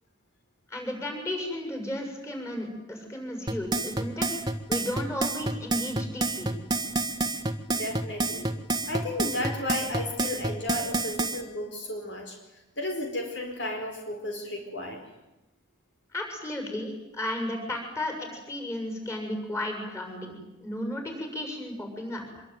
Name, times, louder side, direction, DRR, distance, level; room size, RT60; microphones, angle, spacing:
voice 1, 0.7-4.4 4.7-6.5 16.1-22.4, left 1 dB, 15° left, 4 dB, 7.0 m, -34 dB
sound 1, 3.5-11.4, right 2 dB, 20° right, 1.6 m, -28 dB
voice 2, 7.7-8.5 8.9-12.4 12.8-15.0, left 1 dB, 55° left, 3 dB, 4.5 m, -33 dB
25.5 x 23.0 x 9.5 m, 0.98 s
head